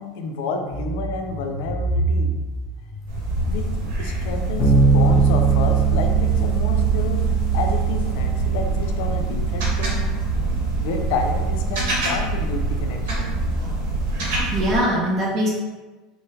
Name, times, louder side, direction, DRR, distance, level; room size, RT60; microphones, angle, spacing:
voice 1, 0.0-2.4 3.5-3.7 4.0-7.2 7.5-10.1 10.8-13.4, left 3 dB, 75° left, 4 dB, 0.4 m, -30 dB
sound 1, 0.7-7.9 8.3-9.6 10.1-10.2 10.5-10.6 11.0-11.1 11.3-11.4 11.7-11.9 12.2-13.3, right 2 dB, 15° right, 1.0 m, -30 dB
sound 2, 3.1-14.8, right 1 dB, 85° right, 1.0 m, -25 dB
Bass guitar, 4.6-14.2, right 6 dB, 30° left, 0.6 m, -23 dB
voice 2, 14.3-15.5, equal, 35° right, -3 dB, 0.5 m, -22 dB
3.7 x 2.0 x 2.7 m, 1.2 s
supercardioid pair, 140°, 0 cm